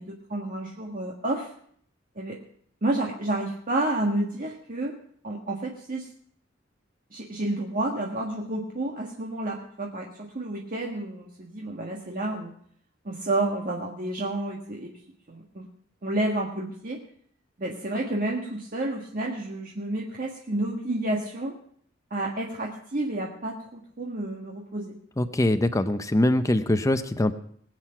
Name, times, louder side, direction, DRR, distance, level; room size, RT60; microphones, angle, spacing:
voice 1, 0.0-1.5 2.1-2.4 2.8-5.0 5.2-6.1 7.1-12.5 13.0-14.9 15.3-15.7 16.0-17.0 17.6-21.6 22.1-25.0, right 2 dB, 45° right, -1 dB, 1.6 m, -30 dB
voice 2, 25.2-27.3, left 1 dB, 15° left, 9 dB, 0.6 m, -23 dB
20.5 x 7.9 x 5.8 m, 0.62 s
head